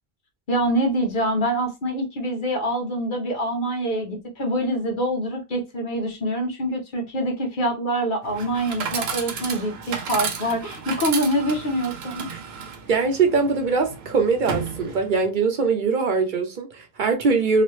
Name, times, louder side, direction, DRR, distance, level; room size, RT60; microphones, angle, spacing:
voice 1, 0.5-12.3, right 1 dB, 55° left, 0.9 m, -25 dB
Chatter / Coin (dropping), 8.2-15.3, right 5 dB, 80° right, 0.9 m, -33 dB
voice 2, 12.9-17.6, right 4 dB, 55° right, 0.7 m, -22 dB
3.0 x 2.3 x 3.1 m
omnidirectional pair, 1.0 m